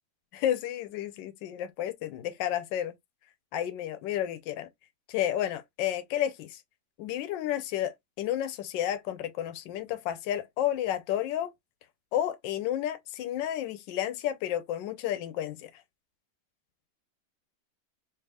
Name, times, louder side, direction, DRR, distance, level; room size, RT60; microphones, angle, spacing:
voice 1, 0.3-2.9 3.5-4.7 5.1-6.6 7.0-11.5 12.1-15.7, left 11 dB, 85° left, 1.3 m, -31 dB
3.4 x 2.9 x 3.3 m
omnidirectional pair, 1.9 m